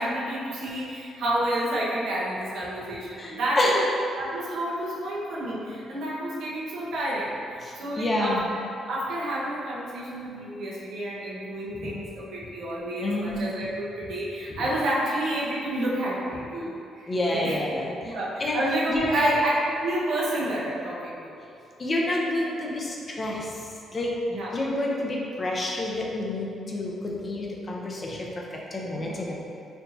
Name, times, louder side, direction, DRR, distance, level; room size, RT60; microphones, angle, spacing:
voice 1, 0.0-3.8 4.2-8.5 8.9-17.6 18.0-19.5 19.8-21.4 24.3-24.5 29.0-29.3, right 1 dB, 75° right, -6 dB, 0.9 m, -30 dB
voice 2, 3.1-3.8 7.6-8.4 11.7-11.9 13.0-13.4 14.6-14.7 17.1-18.6 18.9-19.3 21.8-23.6 23.9-24.1 24.5-29.4, left 1 dB, 35° left, -3 dB, 0.6 m, -28 dB
4.4 x 2.8 x 2.6 m, 2.6 s
cardioid pair, 90°, 0 cm